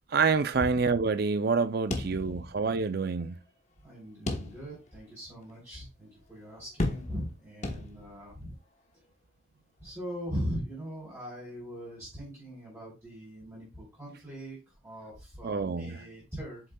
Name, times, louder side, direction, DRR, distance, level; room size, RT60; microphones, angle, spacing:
voice 1, 0.1-3.4 15.4-16.0, right 4 dB, 45° right, 0.5 m, -27 dB
sound 1, 1.9-2.8 3.1-3.2 4.3-4.9 5.4-5.5 6.8-7.4 7.6-8.3, left 2 dB, 35° left, 1.0 m, -33 dB
voice 2, 2.0-2.5 3.8-8.5 9.8-16.6, equal, 10° right, 3.5 m, -40 dB
7.7 x 6.4 x 2.3 m
head